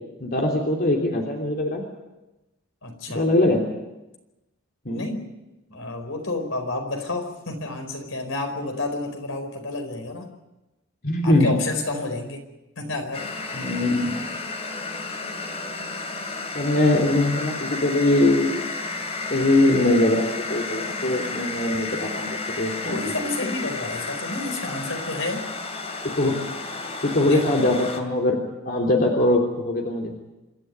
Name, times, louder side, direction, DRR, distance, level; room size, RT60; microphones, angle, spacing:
voice 1, 0.2-1.8 3.1-3.6 4.8-5.1 11.0-11.6 13.5-14.2 16.5-18.6 19.3-23.1 26.0-26.4 27.0-30.1, left 1 dB, 50° left, 0 dB, 3.3 m, -22 dB
voice 2, 2.8-3.3 4.9-5.3 5.7-10.3 11.2-12.4 12.8-13.3 22.8-25.5 27.2-27.4, left 2 dB, 75° left, 5 dB, 4.8 m, -30 dB
sound 1, 13.1-28.0, left 3 dB, 30° left, 2.6 m, -32 dB
27.0 x 13.5 x 9.5 m, 1.0 s
head